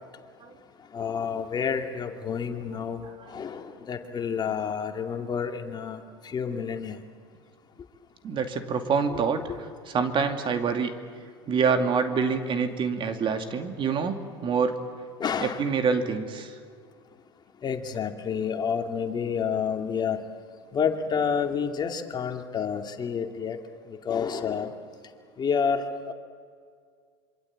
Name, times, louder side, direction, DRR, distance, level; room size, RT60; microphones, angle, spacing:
voice 1, 0.9-7.0 9.1-9.2 15.2-15.6 17.6-20.2 20.7-23.6 23.9-24.7 25.4-26.1, left 6 dB, 35° left, 5 dB, 2.5 m, -29 dB
voice 2, 8.2-9.4 9.9-10.9 11.5-14.2 14.4-14.7 15.4-16.5, right 5 dB, 40° right, 6 dB, 2.6 m, -26 dB
26.5 x 24.5 x 8.8 m, 2.1 s
hypercardioid pair, 85°, 13 cm